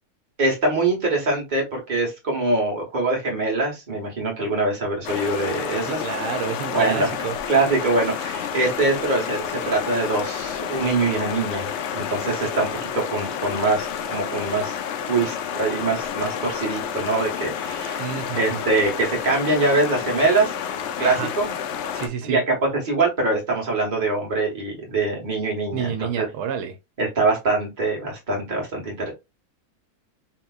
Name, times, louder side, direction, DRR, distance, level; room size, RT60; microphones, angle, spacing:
voice 1, 0.4-6.0 6.7-7.1 7.5-12.7 12.9-14.7 15.1-18.0 18.3-20.5 21.0-21.5 22.2-22.6 22.8-26.3 27.0-29.1, right 3 dB, 30° right, 1.3 m, -23 dB
sound 1, 5.0-22.1, left 8 dB, 70° left, 0.6 m, -30 dB
voice 2, 5.9-7.4 18.0-18.6 21.0-21.3 21.9-22.4 25.7-26.8, right 7 dB, 85° right, 1.2 m, -29 dB
3.8 x 2.9 x 2.3 m
omnidirectional pair, 1.7 m